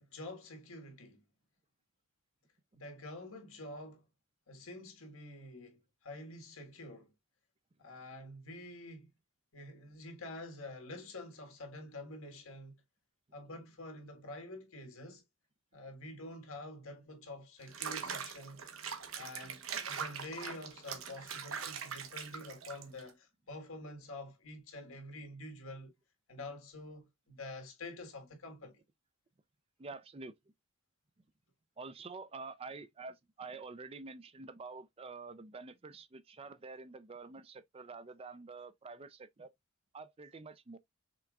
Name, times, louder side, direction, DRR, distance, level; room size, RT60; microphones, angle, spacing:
voice 1, 0.1-1.2 2.7-4.0 4.5-7.1 7.8-9.1 9.5-12.8 13.3-15.2 15.7-18.7 19.2-25.9 26.3-28.8, left 2 dB, 70° left, 1.7 m, -47 dB
Water / Bathtub (filling or washing), 17.6-23.1, right 6 dB, 70° right, 1.1 m, -42 dB
voice 2, 29.8-30.4 31.8-39.5 39.9-40.8, right 4 dB, 25° right, 0.4 m, -48 dB
6.0 x 3.5 x 2.4 m
head